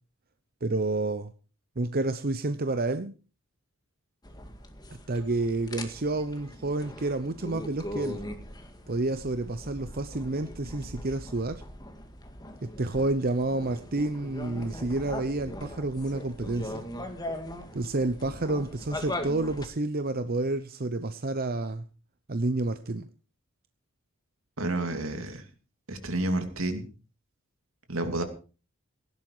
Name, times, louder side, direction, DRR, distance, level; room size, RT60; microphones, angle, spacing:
voice 1, 0.6-1.3 1.8-3.1 5.1-8.2 8.9-11.6 12.6-16.9 17.7-21.8 22.3-23.1, right 2 dB, 45° right, 0.8 m, -29 dB
sound 1, 4.2-19.7, left 1 dB, 20° left, 2.0 m, -40 dB
voice 2, 24.6-25.4 25.9-26.8 27.9-28.2, right 1 dB, 80° right, 2.9 m, -30 dB
17.0 x 11.0 x 4.9 m
head